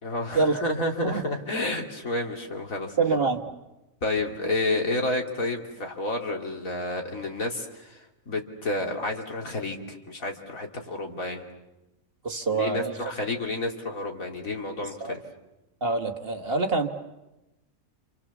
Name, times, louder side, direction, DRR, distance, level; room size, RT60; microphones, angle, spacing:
voice 1, 0.0-3.0 4.0-11.4 12.5-15.2, left 2 dB, 70° left, 2 dB, 3.1 m, -30 dB
voice 2, 3.0-3.5 12.2-12.9 14.8-15.1 15.8-16.9, right 4 dB, 45° right, 5 dB, 1.7 m, -25 dB
30.0 x 27.5 x 7.2 m, 0.98 s
omnidirectional pair, 1.5 m